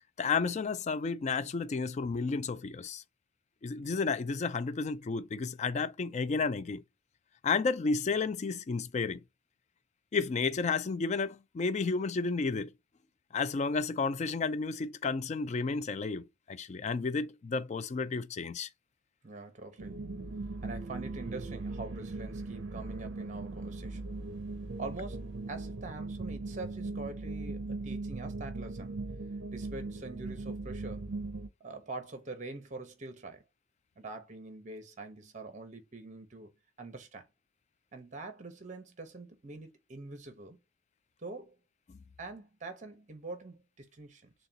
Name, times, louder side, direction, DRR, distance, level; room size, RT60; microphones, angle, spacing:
voice 1, 0.2-3.0 3.6-6.8 7.4-9.2 10.1-12.7 13.3-18.7 41.9-42.0, left 4 dB, 35° left, 0.3 m, -32 dB
voice 2, 19.2-20.0 20.6-24.0 24.8-29.0 29.5-31.1 31.6-33.4 34.0-36.5 36.8-37.3 37.9-40.6 41.2-41.6 42.2-44.3, right 3 dB, 35° right, 0.9 m, -44 dB
sound 1, 19.8-31.5, right 3 dB, 60° right, 0.6 m, -39 dB
6.5 x 2.3 x 2.7 m
head